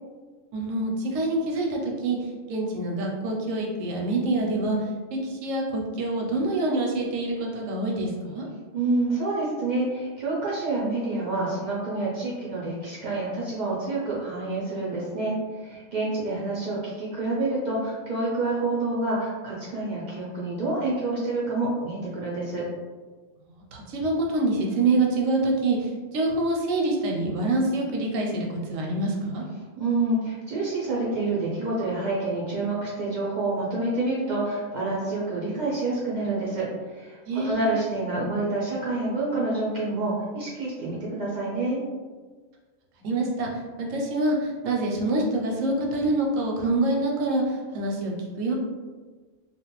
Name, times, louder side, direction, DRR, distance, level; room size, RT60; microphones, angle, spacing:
voice 1, 0.5-4.8 5.1-8.5 23.6-29.4 37.2-37.7 43.0-43.5 43.8-48.5, right 2 dB, 80° right, -1 dB, 1.0 m, -26 dB
voice 2, 8.7-22.6 29.8-41.8, right 2 dB, 60° right, -7 dB, 0.5 m, -28 dB
2.4 x 2.1 x 2.9 m, 1.4 s
omnidirectional pair, 1.3 m